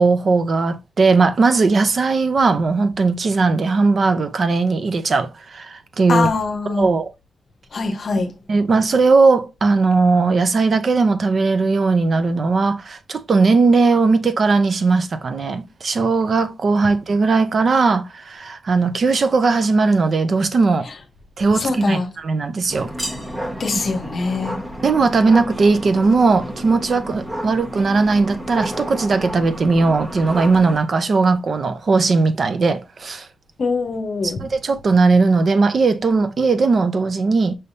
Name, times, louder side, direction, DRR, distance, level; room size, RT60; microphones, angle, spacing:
voice 1, 0.0-6.3 6.7-7.1 8.5-20.9 21.4-22.9 24.8-33.3 34.2-37.6, right 4 dB, 45° right, 0.6 m, -18 dB
voice 2, 6.1-6.9 7.7-8.3 21.6-22.1 23.6-24.6 33.6-34.4, left 3 dB, 50° left, 0.8 m, -22 dB
sound 1, 22.7-30.8, equal, 20° right, 1.1 m, -31 dB
5.5 x 3.4 x 2.6 m
wide cardioid pair, 130°, 0 cm